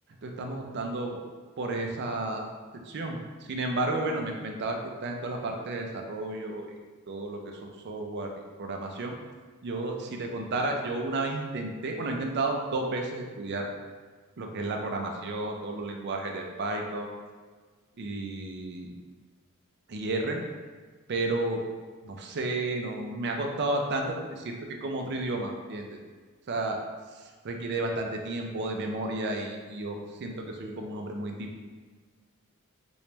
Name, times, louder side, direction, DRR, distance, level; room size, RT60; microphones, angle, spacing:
voice 1, 0.2-1.2 1.6-2.4 2.8-6.8 7.1-8.3 8.6-9.1 9.6-13.7 14.4-17.1 18.0-18.9 19.9-20.4 21.1-21.6 22.0-24.6 24.8-26.0 26.5-26.8 27.1-31.6, right 2 dB, 50° right, 2 dB, 0.4 m, -32 dB
3.0 x 2.9 x 3.3 m, 1.5 s
head